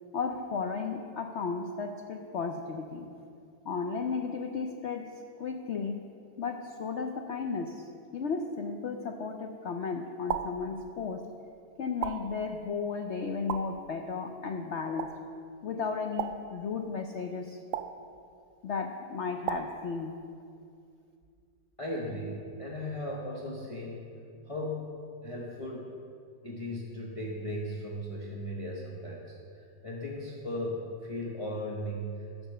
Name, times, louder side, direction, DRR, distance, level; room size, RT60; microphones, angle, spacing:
voice 1, 0.1-3.1 3.6-6.1 6.4-11.3 11.8-15.2 15.6-17.6 18.6-20.2, left 5 dB, 85° left, 4 dB, 0.6 m, -34 dB
sound 1, 10.3-10.7 12.0-12.4 13.5-13.8 15.0-15.3 16.2-16.6 17.7-18.1 19.5-19.9, right 9 dB, 90° right, 0.7 m, -35 dB
voice 2, 21.8-24.2 24.5-25.9 26.4-32.5, left 1 dB, 20° left, -3 dB, 0.9 m, -37 dB
10.5 x 7.0 x 6.7 m, 2.4 s
omnidirectional pair, 1.9 m